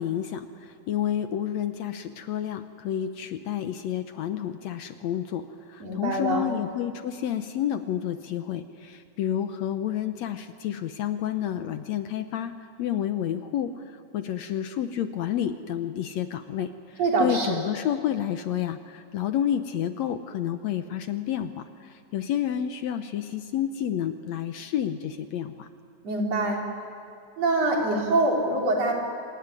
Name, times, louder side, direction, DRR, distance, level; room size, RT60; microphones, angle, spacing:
voice 1, 0.0-13.7 14.1-25.7, left 10 dB, 70° left, 9 dB, 2.0 m, -30 dB
voice 2, 5.8-6.5 17.0-17.6 26.0-26.6 27.4-28.9, right 2 dB, 55° right, 0 dB, 4.6 m, -24 dB
25.5 x 20.5 x 9.8 m, 2.4 s
omnidirectional pair, 3.6 m